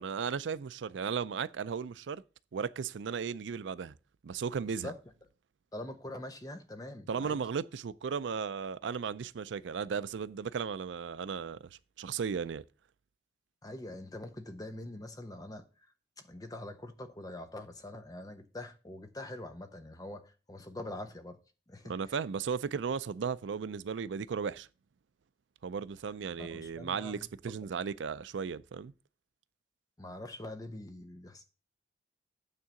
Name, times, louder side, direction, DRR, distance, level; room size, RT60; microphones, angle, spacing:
voice 1, 0.0-2.2 2.5-3.9 4.2-4.9 7.1-11.6 12.0-12.6 21.9-24.7 25.6-28.9, right 6 dB, 90° right, 0.4 m, -35 dB
voice 2, 5.7-7.4 13.6-15.7 16.2-21.4 21.7-22.1 26.4-27.3 30.0-31.4, left 1 dB, 20° left, 0.9 m, -44 dB
9.0 x 3.8 x 6.9 m
head